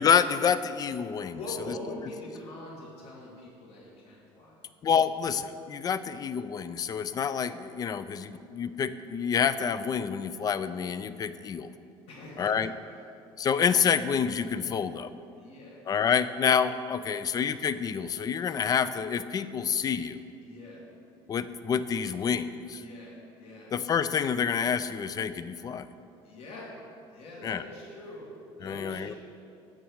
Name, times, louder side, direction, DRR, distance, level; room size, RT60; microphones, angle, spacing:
voice 1, 0.0-1.4 4.8-11.7 12.4-12.7 13.4-15.1 15.9-20.2 21.3-22.8 23.7-25.9 27.4-27.6 28.6-29.1, left 7 dB, 35° left, 13 dB, 0.4 m, -28 dB
voice 2, 1.3-4.6 12.1-12.6 15.4-15.9 16.7-16.8 17.1-17.3 20.4-20.9 22.7-23.8 26.2-26.8 27.1-29.2, left 1 dB, 55° left, -3 dB, 2.3 m, -43 dB
7.2 x 6.2 x 6.4 m, 2.6 s
supercardioid pair, 100°, 12 cm